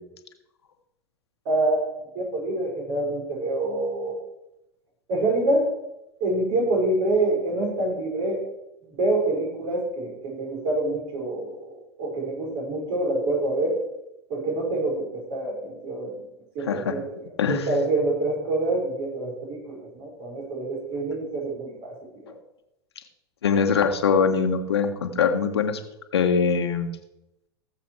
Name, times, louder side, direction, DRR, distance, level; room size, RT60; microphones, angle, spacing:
voice 1, 1.5-1.8 2.1-4.2 5.1-5.7 6.2-8.4 8.9-13.8 14.3-16.2 16.5-22.0, right 2 dB, 55° right, -1 dB, 5.6 m, -26 dB
voice 2, 23.4-25.8 26.1-26.9, left 6 dB, 75° left, 6 dB, 1.5 m, -22 dB
17.0 x 7.4 x 4.9 m, 0.88 s
figure-of-eight pair, 90°, 14 cm